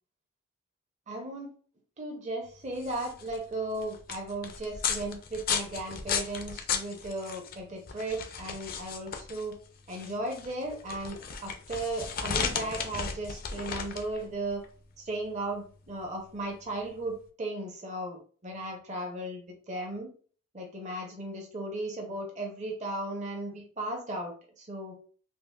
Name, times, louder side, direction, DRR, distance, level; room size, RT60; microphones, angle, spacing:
voice 1, 1.1-1.5 2.0-9.6 9.9-14.6 15.0-20.1 20.5-25.0, right 2 dB, 35° right, 1 dB, 0.6 m, -36 dB
sound 1, 2.6-17.2, left 6 dB, 45° left, 0.4 m, -36 dB
5.3 x 2.0 x 2.2 m, 0.42 s
head